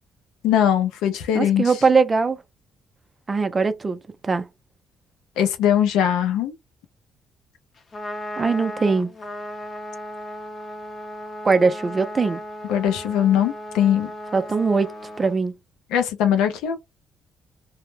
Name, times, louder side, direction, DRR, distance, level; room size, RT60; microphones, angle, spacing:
voice 1, 0.4-1.8 5.4-6.5 12.7-14.1 15.9-16.8, left 9 dB, 85° left, 0.4 m, -20 dB
voice 2, 1.3-2.4 3.3-4.0 4.2-4.5 8.4-9.1 11.4-12.4 14.3-14.9 15.2-15.5, right 4 dB, 30° right, 0.4 m, -20 dB
Trumpet, 7.8-15.4, left 1 dB, 40° left, 0.7 m, -36 dB
2.1 x 2.0 x 3.1 m
supercardioid pair, 75°, 0 cm